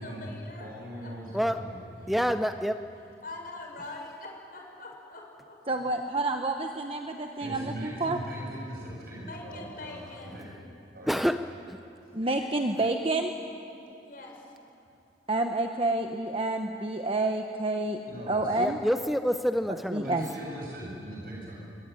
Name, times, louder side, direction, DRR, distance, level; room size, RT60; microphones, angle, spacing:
voice 1, 0.0-0.7 1.0-1.1 3.2-5.6 9.2-10.4 14.0-14.4, left 2 dB, 50° left, 0 dB, 6.4 m, -43 dB
voice 2, 0.6-1.8 2.1-2.3 7.4-10.5 10.9-11.2 18.1-18.7 20.0-21.6, equal, 50° right, -3 dB, 7.5 m, -40 dB
voice 3, 2.1-2.8 11.1-11.4 11.7-11.8 18.6-20.1, equal, ahead, 8 dB, 0.6 m, -27 dB
voice 4, 5.7-8.2 12.1-13.3 15.3-18.0 18.3-18.8 19.9-20.3, right 2 dB, 30° right, 4 dB, 1.1 m, -29 dB
26.0 x 24.0 x 9.3 m, 2.7 s
head